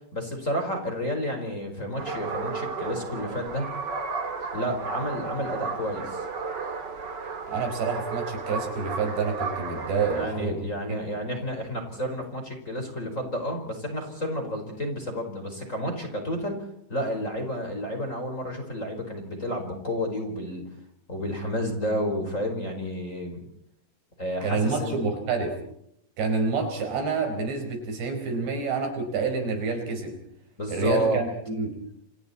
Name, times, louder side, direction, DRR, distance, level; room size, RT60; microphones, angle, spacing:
voice 1, 0.1-3.7 4.5-6.2 10.0-20.6 21.1-23.4 24.2-25.0 30.6-31.2, equal, 20° left, 3 dB, 4.7 m, -31 dB
sound 1, 2.0-10.2, right 4 dB, 35° right, 2.1 m, -33 dB
voice 2, 7.5-11.0 24.4-25.6 26.2-30.1 30.7-31.8, right 4 dB, 80° right, 4 dB, 7.0 m, -28 dB
29.5 x 26.5 x 4.3 m, 0.71 s
omnidirectional pair, 4.9 m